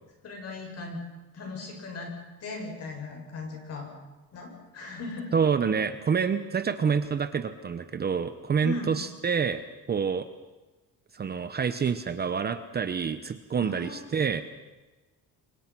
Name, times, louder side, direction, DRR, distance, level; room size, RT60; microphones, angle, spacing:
voice 1, 0.2-1.0 1.3-2.1 2.4-3.9 4.3-5.3 8.6-8.9 13.6-14.0, left 3 dB, 45° left, 2 dB, 7.7 m, -37 dB
voice 2, 5.3-9.6 9.9-10.3 11.1-14.4, right 6 dB, 25° right, 10 dB, 1.0 m, -27 dB
29.5 x 24.0 x 6.2 m, 1.2 s
cardioid pair, 175°, 36 cm